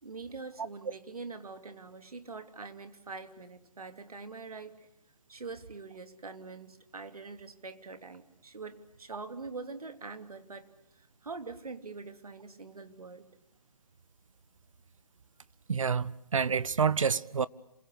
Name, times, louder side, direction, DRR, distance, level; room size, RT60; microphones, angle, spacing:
voice 1, 0.0-4.9 5.3-13.3, right 4 dB, 75° right, 3.1 m, -44 dB
voice 2, 15.7-17.5, right 6 dB, 60° right, 1.0 m, -28 dB
27.5 x 23.0 x 8.5 m
hypercardioid pair, 165°, 19 cm